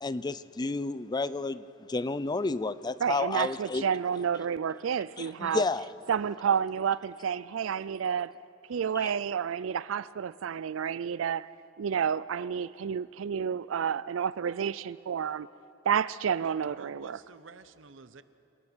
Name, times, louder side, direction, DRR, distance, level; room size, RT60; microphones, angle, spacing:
voice 1, 0.0-1.6 1.9-3.8 5.2-5.9 9.0-9.1, left 3 dB, 20° left, 0.4 m, -31 dB
voice 2, 3.0-5.6 6.1-8.3 8.7-11.5 11.8-15.5 15.9-17.2, right 7 dB, 85° right, 0.4 m, -30 dB
voice 3, 16.4-18.2, right 4 dB, 70° right, 0.9 m, -51 dB
27.5 x 18.5 x 6.2 m
head